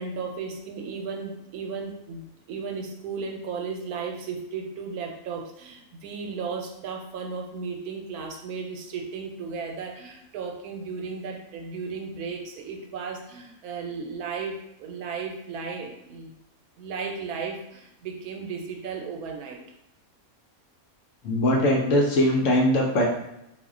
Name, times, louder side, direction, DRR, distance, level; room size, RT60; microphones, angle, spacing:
voice 1, 0.0-16.4 16.8-19.6, right 5 dB, 80° right, 1 dB, 1.1 m, -35 dB
voice 2, 21.2-23.0, left 1 dB, 65° left, -1 dB, 0.8 m, -21 dB
2.5 x 2.1 x 3.5 m, 0.82 s
omnidirectional pair, 1.5 m